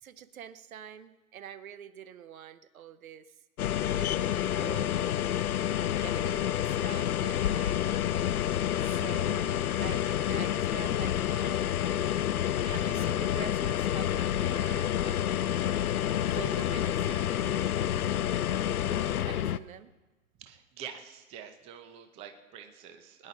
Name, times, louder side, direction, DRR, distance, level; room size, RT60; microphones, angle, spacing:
voice 1, 0.0-3.4 3.9-5.5 6.0-8.0 8.8-11.7 12.6-15.4 16.3-17.7 19.2-19.9, right 9 dB, 70° right, 14 dB, 0.9 m, -46 dB
sound 1, 3.6-19.6, left 11 dB, 85° left, 0.6 m, -29 dB
voice 2, 20.4-23.3, right 8 dB, 15° right, 6 dB, 0.7 m, -46 dB
21.5 x 10.0 x 4.0 m, 1.2 s
hypercardioid pair, 140°, 43 cm